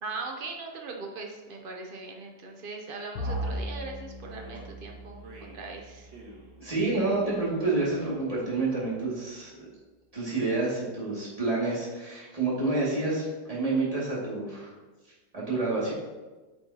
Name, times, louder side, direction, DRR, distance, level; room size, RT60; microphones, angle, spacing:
voice 1, 0.0-6.1, right 3 dB, 65° right, 1 dB, 0.5 m, -40 dB
Bowed string instrument, 3.1-7.7, equal, 85° left, 1.4 m, -39 dB
Male speech man speaking, 3.2-3.7 4.3-4.7 5.2-5.6 6.0-6.5 6.9-7.3 7.7-8.2, right 2 dB, 85° right, 1.9 m, -45 dB
voice 2, 6.6-9.5 10.1-14.7 15.3-15.9, right 3 dB, 20° right, -7 dB, 2.2 m, -28 dB
8.7 x 5.9 x 2.8 m, 1.2 s
omnidirectional pair, 2.0 m